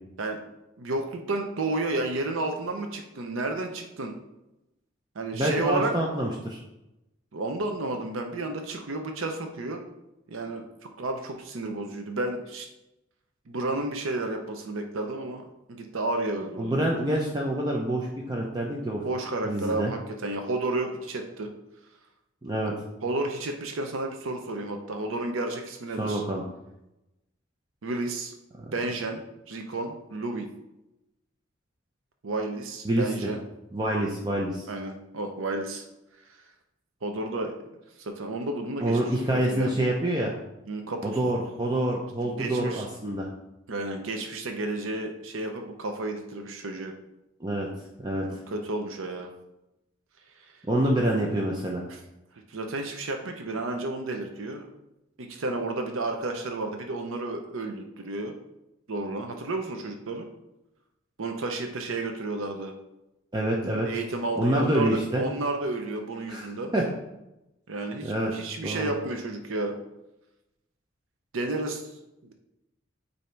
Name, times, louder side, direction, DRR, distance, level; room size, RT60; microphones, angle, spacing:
voice 1, 0.8-4.1 5.1-5.9 7.3-9.8 10.3-10.6 11.0-12.7 13.5-15.4 15.7-16.7 19.0-21.5 22.6-22.7 23.0-26.2 27.8-28.3 28.7-29.2 29.5-30.5 32.2-33.4 34.7-35.8 37.0-37.5 38.0-39.0 39.5-39.7 40.7-41.1 42.2-42.9 43.7-46.9 48.5-49.3 50.4-50.5 51.9-52.0 52.5-54.7 55.2-58.3 58.9-60.3 61.2-62.7 63.8-66.7 67.7-69.8 71.3-71.9, right 2 dB, 90° right, 4 dB, 0.7 m, -31 dB
voice 2, 5.3-6.6 16.6-19.1 19.4-19.9 22.4-22.7 26.0-26.4 28.6-28.7 32.8-33.3 33.7-34.7 38.8-40.3 41.0-43.3 47.4-47.7 48.0-48.3 50.7-51.8 63.3-63.9 64.4-65.2 66.3-66.9 68.0-68.3 68.6-68.9, right 1 dB, 20° right, -2 dB, 0.6 m, -27 dB
8.3 x 2.8 x 4.4 m, 0.92 s
head